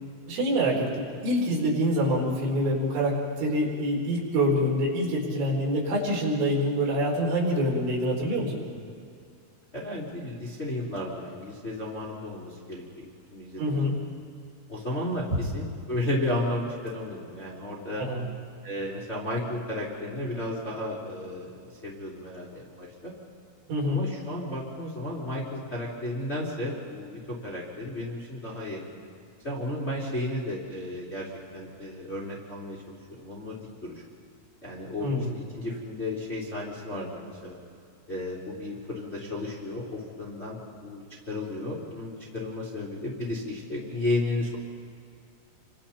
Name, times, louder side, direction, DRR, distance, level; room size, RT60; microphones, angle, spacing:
voice 1, 0.3-8.6 13.6-14.0 15.3-15.4 18.0-18.2 23.7-24.0 35.0-35.3, equal, 70° right, -3 dB, 6.5 m, -26 dB
voice 2, 9.7-13.0 13.3-13.8 14.7-18.0 18.6-23.1 23.9-28.8 29.4-31.3 31.5-34.0 34.6-37.6 38.1-44.6, left 1 dB, 15° left, -5 dB, 2.7 m, -33 dB
29.5 x 25.0 x 4.4 m, 2.3 s
omnidirectional pair, 5.8 m